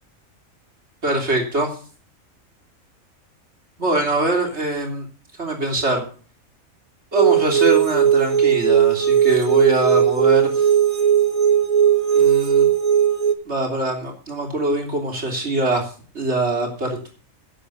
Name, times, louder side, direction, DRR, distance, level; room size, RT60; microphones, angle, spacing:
voice 1, 1.0-1.7 3.8-5.0 5.4-6.1 7.1-10.7 12.1-12.7 13.5-15.8 16.1-17.1, right 2 dB, 55° right, 1 dB, 3.6 m, -23 dB
sound 1, 7.1-13.3, right 9 dB, 80° right, 1.9 m, -17 dB
11.5 x 8.5 x 6.7 m, 0.40 s
omnidirectional pair, 1.4 m